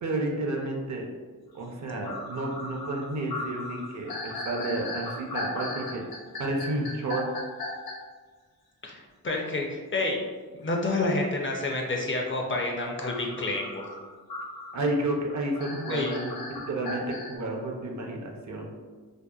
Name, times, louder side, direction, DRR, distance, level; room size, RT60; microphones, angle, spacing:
voice 1, 0.0-1.1 1.5-6.0 6.4-7.3 14.7-16.3 16.7-18.6, right 2 dB, 50° right, 1 dB, 0.5 m, -31 dB
sound 1, 1.6-1.7 2.0-7.9 13.0-17.3, left 2 dB, 85° left, 0.6 m, -37 dB
voice 2, 8.8-10.2 10.6-13.8 15.9-16.1, left 2 dB, 35° left, 1 dB, 0.4 m, -29 dB
2.7 x 2.1 x 2.3 m, 1.4 s
cardioid pair, 55°, 36 cm